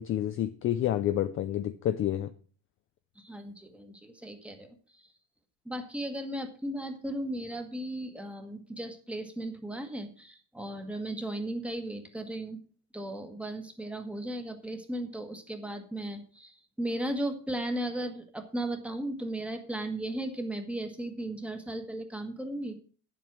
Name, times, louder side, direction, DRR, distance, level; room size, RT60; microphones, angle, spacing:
voice 1, 0.0-2.3, left 12 dB, 30° left, 11 dB, 0.5 m, -29 dB
voice 2, 3.1-5.1 5.6-12.6 12.9-22.8, right 1 dB, 5° right, 5 dB, 1.4 m, -36 dB
9.9 x 7.7 x 6.0 m, 0.42 s
cardioid pair, 155°, 41 cm